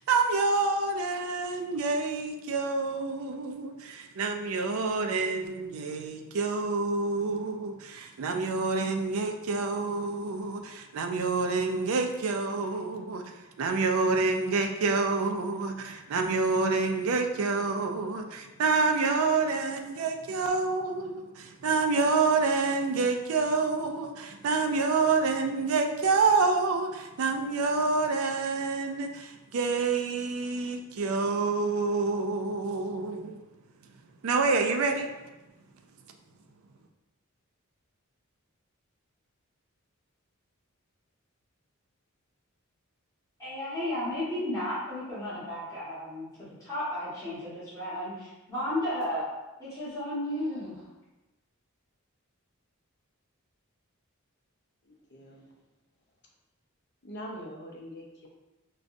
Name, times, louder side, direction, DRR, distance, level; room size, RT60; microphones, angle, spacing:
voice 1, 0.0-13.2 13.6-33.4 34.2-35.1, right 4 dB, 75° right, 4 dB, 0.4 m, -28 dB
voice 2, 43.4-49.2 49.6-50.8, left 1 dB, 15° left, -13 dB, 1.3 m, -33 dB
voice 3, 54.8-55.5 57.0-58.3, equal, 55° left, -1 dB, 0.7 m, -43 dB
5.1 x 2.3 x 2.5 m, 1.0 s
head